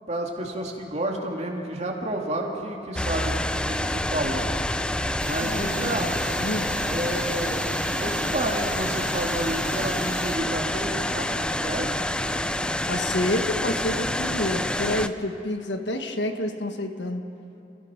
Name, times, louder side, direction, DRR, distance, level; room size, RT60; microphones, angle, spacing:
voice 1, 0.0-4.5 5.2-6.1 6.8-7.7 8.0-11.9, right 1 dB, 40° right, 0 dB, 2.6 m, -30 dB
sound 1, 3.0-15.1, left 1 dB, 5° left, 0.5 m, -27 dB
sound 2, 5.2-10.4, right 2 dB, 60° right, 3.7 m, -37 dB
voice 2, 5.4-6.1 6.4-6.8 12.9-17.2, left 1 dB, 75° left, 6 dB, 1.5 m, -28 dB
30.0 x 16.5 x 5.9 m, 2.8 s
head